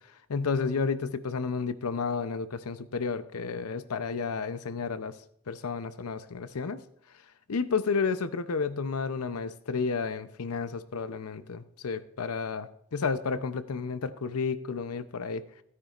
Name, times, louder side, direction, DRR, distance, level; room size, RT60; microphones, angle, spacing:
voice 1, 0.3-5.1 5.5-6.8 7.5-15.4, left 5 dB, 85° left, 13 dB, 0.7 m, -31 dB
16.5 x 9.5 x 2.5 m, 0.71 s
head